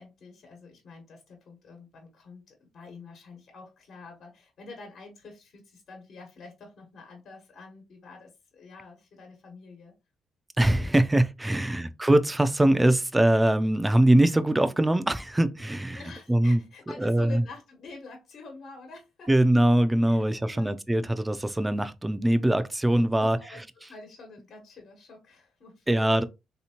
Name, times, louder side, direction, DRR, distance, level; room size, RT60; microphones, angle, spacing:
voice 1, 0.0-9.9 11.5-11.8 15.9-19.3 20.1-20.7 22.9-26.3, left 4 dB, 60° left, 1.2 m, -47 dB
voice 2, 10.6-16.0 16.3-16.6 17.0-17.4 19.3-23.6 25.9-26.2, right 1 dB, 10° right, 0.4 m, -22 dB
3.3 x 2.8 x 2.8 m
cardioid pair, 90°, 0 cm